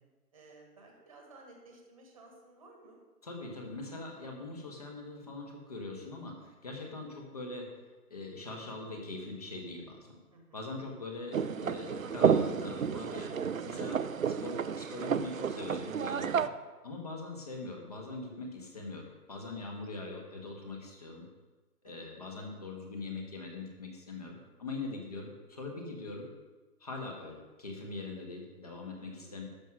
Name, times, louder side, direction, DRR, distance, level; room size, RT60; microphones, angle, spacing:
voice 1, 0.3-3.0 10.3-10.7 21.8-22.1 29.0-29.4, right 2 dB, 20° right, 1 dB, 1.4 m, -55 dB
voice 2, 3.2-7.7 8.1-10.2 10.5-14.0 14.3-16.5 16.8-21.3 21.8-26.3 26.8-29.4, left 3 dB, 25° left, 1 dB, 1.3 m, -42 dB
sound 1, 11.3-16.5, right 7 dB, 60° right, 0.6 m, -31 dB
12.0 x 6.3 x 6.3 m, 1.2 s
hypercardioid pair, 175°, 47 cm